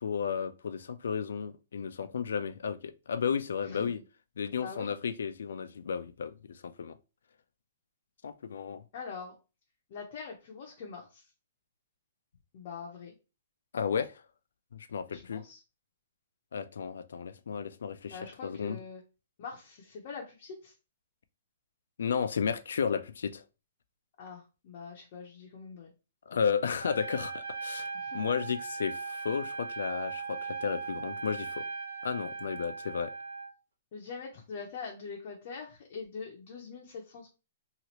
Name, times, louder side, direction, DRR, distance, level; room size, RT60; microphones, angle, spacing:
voice 1, 0.0-4.0 4.4-7.0 8.2-8.8 13.7-14.2 14.7-15.4 16.5-18.8 22.0-23.4 26.3-31.6 32.0-33.1, left 6 dB, 80° left, 0.3 m, -33 dB
voice 2, 3.7-4.0 4.5-4.9 8.9-9.3 9.9-11.2 12.5-13.2 15.1-15.6 18.1-19.0 19.4-20.7 24.2-25.9 27.9-28.3 33.9-37.3, left 5 dB, 30° left, 0.5 m, -43 dB
Trumpet, 26.8-33.5, right 4 dB, 65° right, 0.9 m, -39 dB
2.8 x 2.4 x 2.9 m
hypercardioid pair, 180°, 0 cm